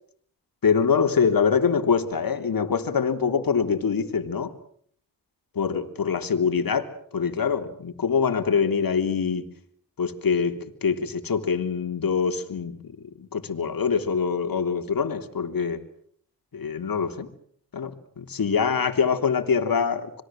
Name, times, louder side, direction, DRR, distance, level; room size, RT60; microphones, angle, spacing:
voice 1, 0.6-4.5 5.5-9.5 10.0-12.7 13.2-15.8 16.5-17.3 17.7-20.2, left 6 dB, 55° left, 3.3 m, -24 dB
26.0 x 22.0 x 7.6 m
supercardioid pair, 45°, 42 cm